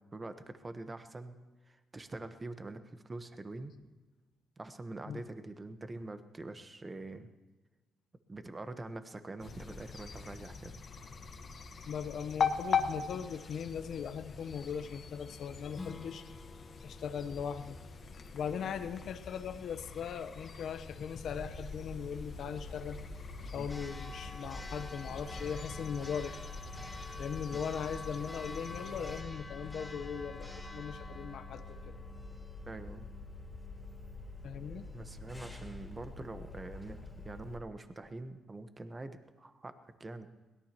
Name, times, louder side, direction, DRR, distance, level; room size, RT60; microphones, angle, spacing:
voice 1, 0.1-1.4 1.7-3.7 4.6-7.3 8.3-10.8 23.5-23.7 27.5-27.6 32.7-33.1 34.9-40.3, right 2 dB, 25° right, 9 dB, 1.2 m, -45 dB
sound 1, 9.4-29.2, left 6 dB, 50° left, 1.4 m, -42 dB
voice 2, 11.9-16.3 16.8-17.8 18.3-23.0 23.5-26.4 27.2-31.9 34.4-34.9, left 7 dB, 70° left, 9 dB, 0.9 m, -39 dB
Strum, 15.7-20.9, left 3 dB, 25° left, 1.2 m, -54 dB
Church bell, 21.3-37.6, left 2 dB, 10° left, 3.8 m, -45 dB
22.5 x 17.5 x 3.0 m, 1.2 s
cardioid pair, 90°, 0 cm